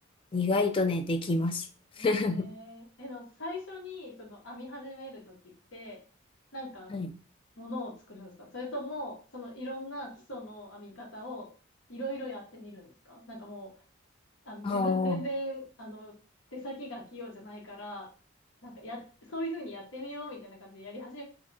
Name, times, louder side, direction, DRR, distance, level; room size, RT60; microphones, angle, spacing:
voice 1, 0.3-1.7 2.0-2.5 6.9-7.1 14.6-15.2, left 3 dB, 25° left, 7 dB, 0.3 m, -28 dB
voice 2, 2.0-6.0 6.5-6.9 7.6-11.5 11.9-13.7 14.4-16.1 16.5-18.1 18.6-21.2, equal, 65° left, -2 dB, 0.9 m, -40 dB
2.8 x 2.2 x 3.7 m, 0.38 s
head